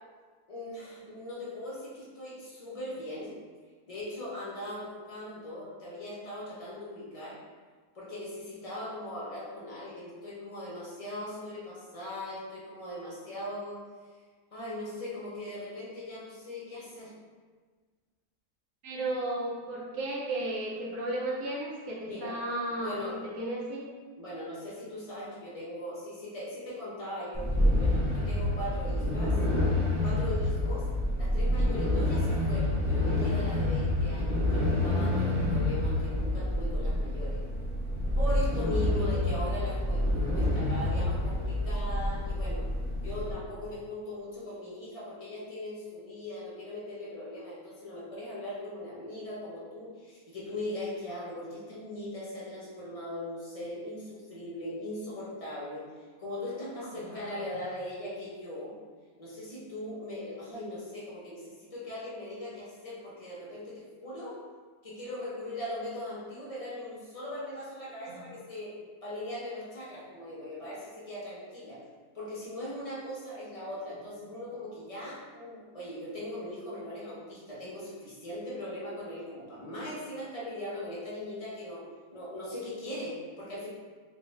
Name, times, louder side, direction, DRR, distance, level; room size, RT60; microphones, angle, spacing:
voice 1, 0.5-3.4 3.9-7.4 7.9-13.8 14.5-17.1 22.1-23.2 24.2-29.4 30.0-30.9 31.2-37.4 38.2-42.6 43.0-58.7 59.2-64.4 64.8-68.7 69.0-71.8 72.1-81.8 82.1-83.7, left 1 dB, 30° left, -7 dB, 0.6 m, -39 dB
voice 2, 18.8-23.0 23.4-23.8 38.9-39.4 57.0-57.4 68.1-68.2, right 1 dB, 80° right, -4 dB, 1.3 m, -34 dB
sound 1, 27.3-43.3, left 1 dB, 20° right, 0.5 m, -28 dB
3.4 x 2.5 x 3.2 m, 1.5 s
omnidirectional pair, 1.6 m